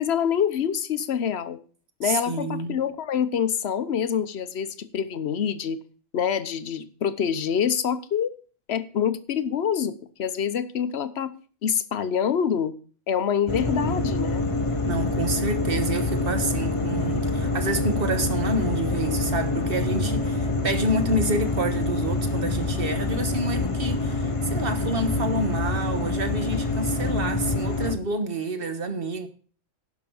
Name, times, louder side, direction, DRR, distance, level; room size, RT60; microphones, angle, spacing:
voice 1, 0.0-1.6 2.0-5.8 6.1-8.3 8.7-11.3 11.6-12.7 13.1-14.5, left 8 dB, 55° left, 1.0 m, -26 dB
voice 2, 2.0-2.8 14.8-29.3, right 2 dB, 45° right, 1.5 m, -28 dB
sound 1, 13.5-27.9, left 2 dB, 30° left, 0.8 m, -26 dB
11.5 x 6.0 x 7.0 m
omnidirectional pair, 1.4 m